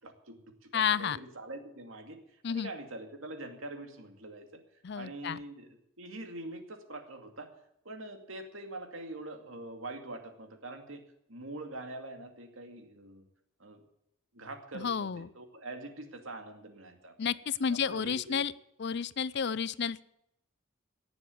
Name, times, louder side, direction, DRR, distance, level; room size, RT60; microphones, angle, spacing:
voice 1, 0.0-4.6 4.9-5.7 6.0-7.5 7.8-11.0 11.3-13.2 13.6-13.8 14.3-17.4 17.7-18.4, right 2 dB, 70° right, 5 dB, 2.4 m, -44 dB
voice 2, 0.7-1.2 2.4-2.7 4.8-5.4 14.7-15.3 17.2-18.5 18.8-20.0, left 7 dB, 55° left, 19 dB, 0.5 m, -31 dB
18.0 x 7.3 x 8.5 m, 0.80 s
head